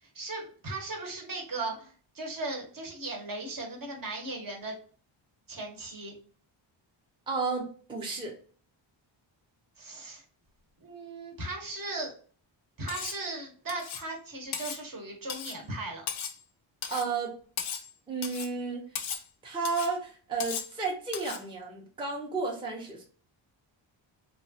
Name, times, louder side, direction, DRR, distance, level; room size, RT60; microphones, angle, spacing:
voice 1, 0.0-4.8 5.5-6.1 9.8-10.2 10.8-12.1 12.8-16.1, right 2 dB, 45° right, 1 dB, 0.9 m, -37 dB
voice 2, 7.3-8.4 16.9-17.3 18.1-18.8 19.4-23.0, right 4 dB, 10° right, -2 dB, 0.6 m, -32 dB
Cutlery silverware, 12.9-13.2 13.7-14.1 14.5-14.8 15.3-15.6 16.1-16.4 16.8-17.1 17.6-17.9 18.2-18.5 19.0-19.3 19.7-19.9 20.4-20.7 21.1-21.4, left 8 dB, 75° left, 0.6 m, -37 dB
3.0 x 2.2 x 2.6 m, 0.43 s
wide cardioid pair, 105°, 48 cm